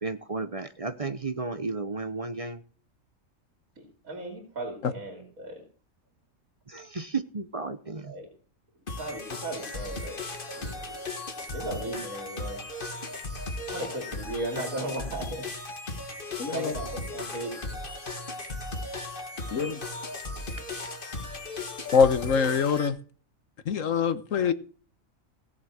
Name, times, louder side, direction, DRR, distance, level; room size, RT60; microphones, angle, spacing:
voice 1, 0.0-2.6 6.7-8.1, right 3 dB, 30° right, 0.7 m, -33 dB
voice 2, 3.8-5.6 8.0-8.3 9.0-10.3 10.5-11.0 11.5-12.6 13.7-15.5 16.5-17.5, right 1 dB, 80° right, 3.3 m, -36 dB
sound 1, 8.9-22.9, left 2 dB, 40° left, 1.8 m, -36 dB
voice 3, 16.4-16.7 19.5-19.8 21.9-23.0 23.6-24.5, left 6 dB, 70° left, 1.5 m, -24 dB
17.5 x 7.0 x 6.3 m
omnidirectional pair, 1.4 m